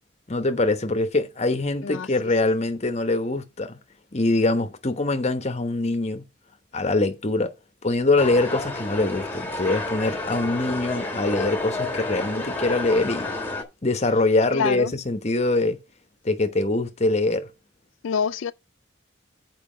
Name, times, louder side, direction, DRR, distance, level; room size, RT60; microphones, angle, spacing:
voice 1, 0.3-3.8 4.1-6.2 6.7-7.5 7.8-13.3 13.8-15.8 16.2-17.5, left 2 dB, 35° left, 0.9 m, -23 dB
sound 1, 8.2-13.6, left 2 dB, 10° left, 1.4 m, -30 dB
voice 2, 14.5-14.9 18.0-18.5, left 6 dB, 90° left, 0.4 m, -26 dB
7.4 x 4.7 x 6.0 m
head